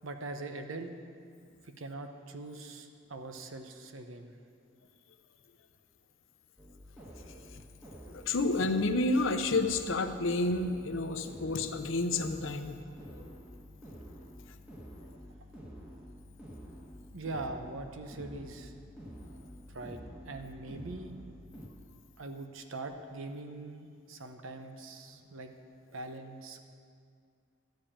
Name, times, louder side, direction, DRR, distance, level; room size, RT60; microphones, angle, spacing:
voice 1, 0.0-0.9 1.6-4.3 17.1-18.7 19.7-21.1 22.2-25.5 25.9-26.6, right 2 dB, 85° right, 6 dB, 0.9 m, -42 dB
sound 1, 6.6-21.7, equal, 5° right, 1.2 m, -49 dB
voice 2, 8.1-12.8 13.1-13.3, left 2 dB, 80° left, 8 dB, 0.7 m, -30 dB
12.5 x 5.3 x 8.6 m, 2.3 s
head